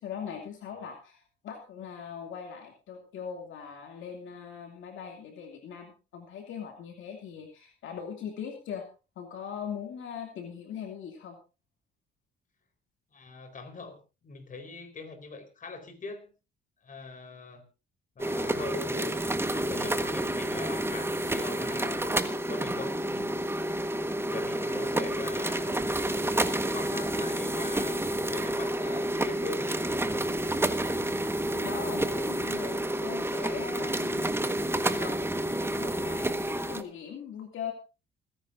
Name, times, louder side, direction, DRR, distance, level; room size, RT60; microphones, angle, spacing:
voice 1, 0.0-8.9 9.2-11.4 31.5-34.5 35.0-35.2 35.6-37.7, left 7 dB, 75° left, 3 dB, 2.6 m, -40 dB
voice 2, 13.1-16.3 16.8-17.6 18.2-19.3 19.5-23.5 24.3-25.9 26.7-28.0 28.3-29.7, left 4 dB, 40° left, 5 dB, 4.2 m, -42 dB
sound 1, 18.2-36.8, right 1 dB, 10° right, 1.4 m, -29 dB
27.5 x 10.5 x 2.6 m, 0.30 s
cardioid pair, 90°, 20 cm